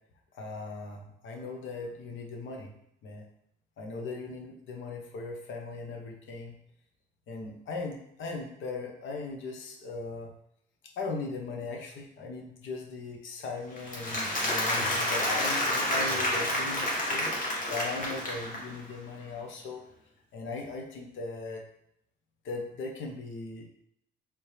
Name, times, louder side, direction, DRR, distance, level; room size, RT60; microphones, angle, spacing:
voice 1, 0.3-2.7 3.0-3.3 3.8-6.5 7.3-10.3 11.0-17.3 17.7-19.8 20.3-21.6 22.4-23.7, left 3 dB, 75° left, 2 dB, 1.0 m, -38 dB
Applause, 13.8-18.8, left 1 dB, 40° left, 1.7 m, -29 dB
4.4 x 3.6 x 3.3 m, 0.74 s
cardioid pair, 90°, 20 cm